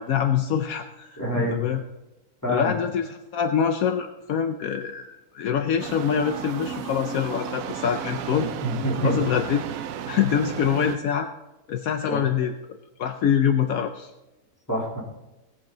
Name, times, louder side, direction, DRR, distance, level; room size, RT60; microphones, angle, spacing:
voice 1, 0.0-1.8 2.5-8.5 9.0-9.6 10.1-11.3 11.7-12.5 13.0-14.1, left 8 dB, 75° left, 7 dB, 1.1 m, -25 dB
voice 2, 1.2-1.6 2.4-2.8 8.6-9.1 12.1-12.2 14.7-15.0, equal, 10° left, -5 dB, 3.4 m, -26 dB
sound 1, 5.8-11.0, right 8 dB, 70° right, 1.0 m, -33 dB
18.5 x 7.6 x 3.9 m, 0.97 s
omnidirectional pair, 1.6 m